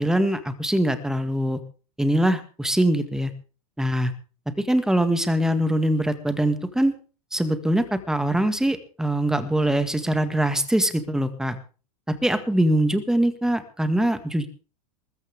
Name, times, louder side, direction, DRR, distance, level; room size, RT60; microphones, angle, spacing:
voice 1, 0.0-1.6 2.0-3.3 3.8-4.1 4.6-6.9 7.3-11.6 12.1-14.5, right 1 dB, 5° right, 10 dB, 1.9 m, -23 dB
22.0 x 14.0 x 3.6 m, 0.37 s
hypercardioid pair, 115°, 20 cm